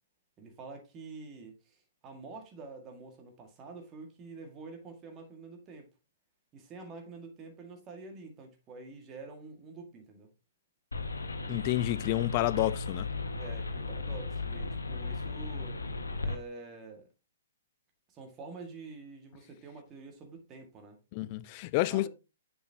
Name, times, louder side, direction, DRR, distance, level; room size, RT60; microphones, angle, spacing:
voice 1, 0.4-5.9 6.5-10.3 13.4-15.8 16.2-17.1 18.1-21.0 21.9-22.1, right 3 dB, 25° right, 1.9 m, -47 dB
sound 1, 10.9-16.4, left 3 dB, 75° left, 1.2 m, -36 dB
voice 2, 11.5-13.1 21.1-22.1, left 16 dB, 35° left, 0.4 m, -29 dB
7.2 x 7.0 x 2.9 m
figure-of-eight pair, 120°, 0 cm